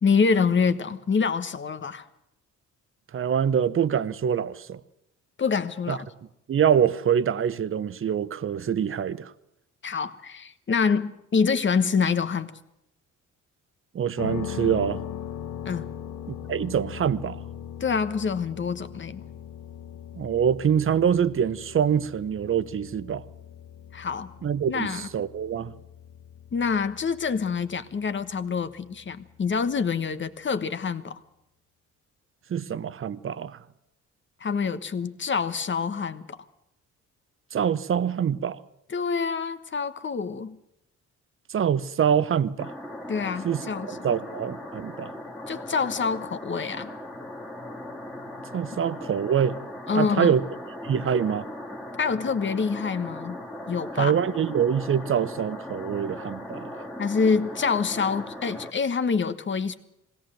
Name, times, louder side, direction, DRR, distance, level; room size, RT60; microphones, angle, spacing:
voice 1, 0.0-2.1 5.4-6.1 9.8-12.6 15.6-15.9 17.8-19.2 23.9-24.3 24.7-25.1 26.5-31.2 34.4-36.4 38.9-40.6 43.1-43.9 45.5-46.9 49.9-50.3 52.0-53.4 53.7-54.2 57.0-59.7, left 5 dB, 40° left, 1.3 m, -26 dB
voice 2, 3.1-4.8 5.9-6.0 6.5-9.3 13.9-15.0 16.3-17.4 20.1-23.2 24.4-25.7 32.5-33.6 37.5-38.6 41.5-42.7 43.4-45.1 48.5-49.6 49.9-50.4 50.8-51.5 54.0-56.8, right 8 dB, 45° right, 0.9 m, -25 dB
sound 1, 14.2-30.0, left 9 dB, 75° left, 1.4 m, -40 dB
sound 2, 42.6-58.7, left 1 dB, ahead, 2.1 m, -38 dB
20.0 x 17.0 x 7.7 m
cardioid pair, 90°, 30 cm